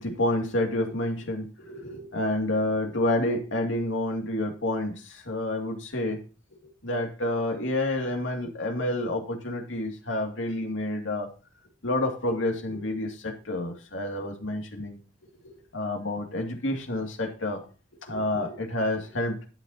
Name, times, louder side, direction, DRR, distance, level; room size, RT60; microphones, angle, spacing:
voice 1, 0.0-6.2 6.8-11.3 11.8-15.0 15.4-17.6 18.0-19.4, left 1 dB, 90° left, 3 dB, 2.5 m, -29 dB
13.5 x 9.7 x 2.9 m, 0.34 s
head